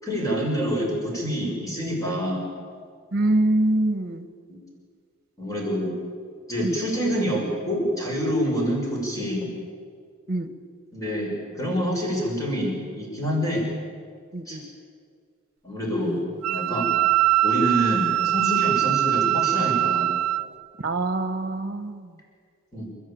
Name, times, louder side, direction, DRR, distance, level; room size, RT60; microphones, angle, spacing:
voice 1, 0.0-2.4 5.4-5.9 6.5-9.5 10.9-13.6 14.5-14.6 15.6-16.9 17.4-20.1 22.7-22.9, equal, 15° left, -2 dB, 6.4 m, -26 dB
voice 2, 3.1-4.2 6.6-6.8 10.3-10.5 14.3-14.6 20.8-22.1, right 2 dB, 45° right, 10 dB, 1.6 m, -24 dB
Wind instrument woodwind instrument, 16.4-20.5, right 12 dB, 85° right, 0.6 m, -22 dB
29.5 x 14.0 x 8.9 m, 2.1 s
head